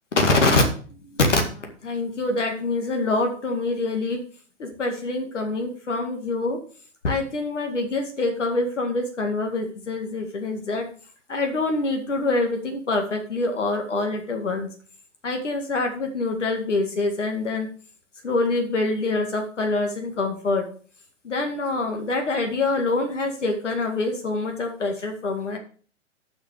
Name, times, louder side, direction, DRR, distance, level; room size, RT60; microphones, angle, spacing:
voice 1, 0.1-0.6 1.0-1.3 1.5-4.2 4.6-6.6 7.0-10.9 11.3-14.7 15.2-17.7 18.2-20.7 21.2-25.6, left 2 dB, 75° left, 4 dB, 2.1 m, -25 dB
8.2 x 6.1 x 6.8 m, 0.43 s
figure-of-eight pair, 115°, 36 cm